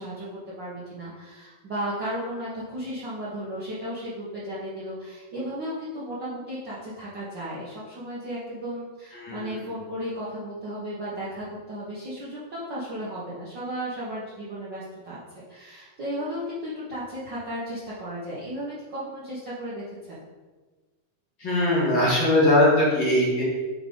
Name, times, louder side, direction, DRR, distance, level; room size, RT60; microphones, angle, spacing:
voice 1, 0.0-20.2, equal, 80° right, -9 dB, 0.9 m, -35 dB
voice 2, 9.2-9.6 21.4-23.4, left 1 dB, 35° left, -8 dB, 2.9 m, -21 dB
8.8 x 4.9 x 3.9 m, 1.3 s
omnidirectional pair, 4.2 m